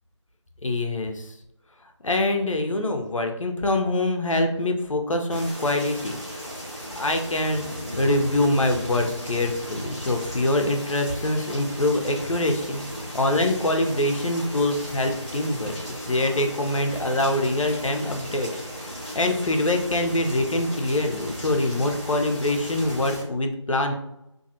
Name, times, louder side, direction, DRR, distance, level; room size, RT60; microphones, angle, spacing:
voice 1, 0.6-1.3 2.0-6.2 7.0-7.6 8.0-18.5 19.1-23.9, left 1 dB, 85° left, 4 dB, 0.6 m, -24 dB
sound 1, 5.3-23.2, equal, 15° right, 0.7 m, -36 dB
2.5 x 2.4 x 2.7 m, 0.84 s
figure-of-eight pair, 175°, 16 cm